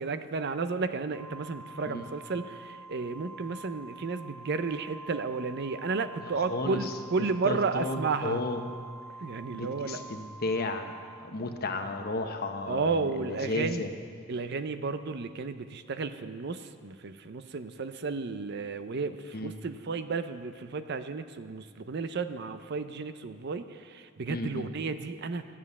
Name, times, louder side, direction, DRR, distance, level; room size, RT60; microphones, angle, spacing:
voice 1, 0.0-8.4 9.2-10.0 12.7-13.9 14.3-25.4, right 4 dB, 60° right, 11 dB, 0.6 m, -33 dB
Organ, 1.1-11.9, right 3 dB, 5° left, 0.4 m, -47 dB
voice 2, 6.4-6.9 7.4-8.6 9.5-10.9 11.2-13.9 19.3-19.5 24.3-24.7, left 2 dB, 55° left, 5 dB, 1.0 m, -33 dB
12.5 x 7.5 x 8.2 m, 2.1 s
head